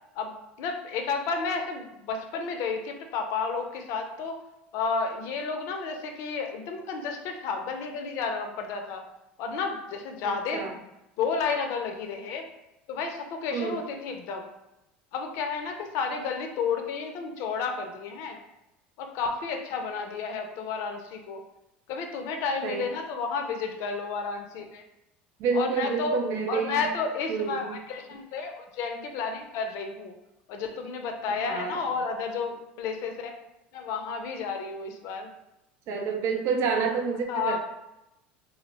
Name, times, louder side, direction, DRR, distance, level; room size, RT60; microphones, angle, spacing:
voice 1, 0.6-4.4 4.7-9.1 9.4-10.8 11.2-12.5 12.9-14.5 15.1-18.4 19.0-21.4 21.9-24.8 25.5-26.2 26.5-30.1 30.5-33.3 33.7-35.3 37.3-37.6, left 5 dB, 60° left, 4 dB, 0.4 m, -31 dB
voice 2, 10.2-10.8 13.5-13.8 22.6-22.9 25.4-26.8 27.3-27.8 31.3-31.8 35.9-37.6, right 5 dB, 55° right, 3 dB, 0.5 m, -29 dB
2.4 x 2.0 x 2.9 m, 0.91 s
hypercardioid pair, 85°, 6 cm